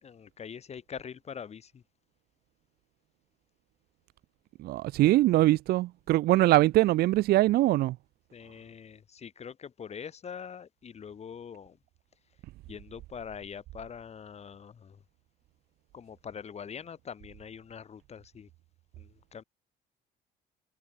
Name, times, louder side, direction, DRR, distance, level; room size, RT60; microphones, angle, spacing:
voice 1, 0.0-1.8 8.3-11.8 12.7-15.0 15.9-18.5 19.0-19.4, left 7 dB, 40° left, 2.7 m, -43 dB
voice 2, 4.6-8.0, right 16 dB, 70° right, 0.5 m, -23 dB
cardioid pair, 110°, 17 cm